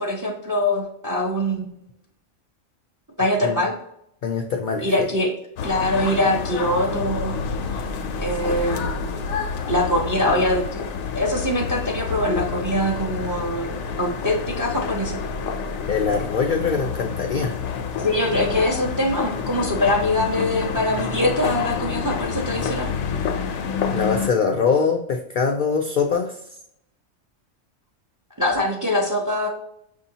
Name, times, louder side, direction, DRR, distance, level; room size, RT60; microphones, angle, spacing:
voice 1, 0.0-1.7 3.2-3.7 4.8-5.3 5.6-7.4 8.2-9.3 9.7-10.9 11.1-15.2 18.0-22.9 28.4-29.5, left 1 dB, 25° right, 0 dB, 0.5 m, -23 dB
voice 2, 4.2-4.9 15.9-17.6 23.9-26.4, left 5 dB, 70° left, 3 dB, 0.5 m, -23 dB
sound 1, 5.6-24.3, left 6 dB, 85° left, 1.0 m, -28 dB
6.1 x 2.7 x 2.7 m, 0.75 s
omnidirectional pair, 1.4 m